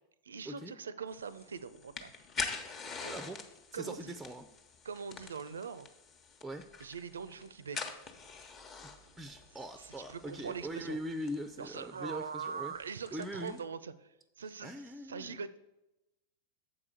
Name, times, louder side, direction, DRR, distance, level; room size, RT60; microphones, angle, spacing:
voice 1, 0.3-2.1 3.0-3.1 3.7-4.2 4.8-5.9 6.8-7.9 9.8-11.0 11.6-13.9 14.4-14.7 15.0-15.6, right 6 dB, 70° right, 16 dB, 0.4 m, -42 dB
sound 1, 1.1-13.6, left 4 dB, 30° left, 1.0 m, -46 dB
voice 2, 2.8-3.4 3.7-4.5 6.4-6.6 9.2-12.7 13.1-13.6 14.6-15.4, equal, 5° right, 9 dB, 0.5 m, -41 dB
7.2 x 4.8 x 6.8 m, 0.94 s
figure-of-eight pair, 90°, 0 cm